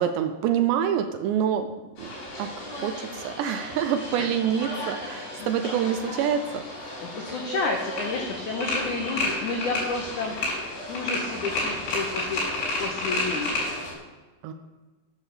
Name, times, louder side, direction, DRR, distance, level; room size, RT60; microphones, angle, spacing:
voice 1, 0.0-1.7 2.0-2.1 2.4-6.6 14.4-14.5, right 9 dB, 80° right, 8 dB, 2.7 m, -26 dB
sound 1, 2.0-13.9, left 2 dB, 60° left, 7.2 m, -32 dB
voice 2, 7.0-12.4 12.8-13.6, left 3 dB, 85° left, 1 dB, 1.7 m, -31 dB
11.0 x 10.5 x 6.7 m, 1.3 s
omnidirectional pair, 5.5 m